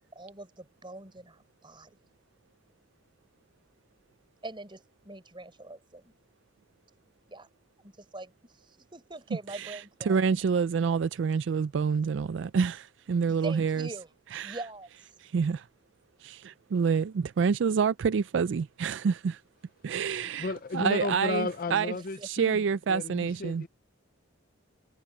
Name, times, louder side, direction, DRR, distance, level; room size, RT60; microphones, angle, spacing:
voice 1, 0.0-2.0 4.4-6.1 7.3-7.5 7.8-10.2 13.3-14.1 14.4-15.1 21.9-22.3, right 2 dB, 25° right, 4.7 m, -43 dB
voice 2, 9.5-13.9 14.3-14.6 15.2-15.7 16.2-19.4 19.8-21.9 22.2-23.6, right 6 dB, 65° right, 0.4 m, -28 dB
voice 3, 20.4-22.6 22.9-23.7, left 3 dB, 45° left, 0.5 m, -33 dB
head